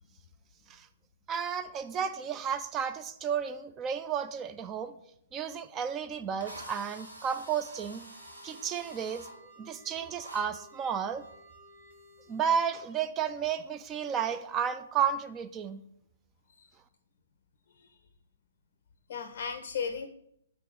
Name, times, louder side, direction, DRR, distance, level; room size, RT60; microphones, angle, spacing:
voice 1, 1.3-4.9 5.3-8.1 8.4-9.3 9.6-11.2 12.3-15.8, right 7 dB, 20° right, 11 dB, 0.3 m, -32 dB
Drill, 5.7-5.8 6.4-9.3 10.2-10.4, equal, 70° right, 1.4 m, -47 dB
sound 1, 7.9-12.8, equal, 50° right, 1.8 m, -56 dB
voice 2, 19.1-20.1, left 6 dB, 45° left, 8 dB, 0.5 m, -36 dB
4.4 x 4.2 x 5.2 m, 0.74 s
figure-of-eight pair, 120°, 0 cm